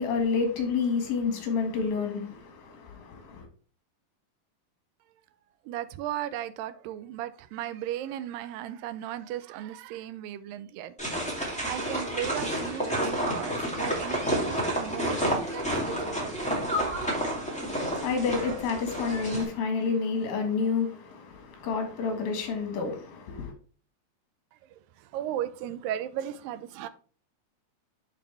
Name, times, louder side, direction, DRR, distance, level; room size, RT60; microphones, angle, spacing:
voice 1, 0.0-3.5 17.9-23.5, left 5 dB, 90° left, 3.5 m, -29 dB
voice 2, 5.7-10.9 11.3-16.6 24.7-26.9, right 12 dB, 85° right, 2.3 m, -36 dB
sound 1, 11.0-19.4, right 1 dB, 5° left, 1.0 m, -30 dB
10.5 x 3.7 x 3.3 m
omnidirectional pair, 4.0 m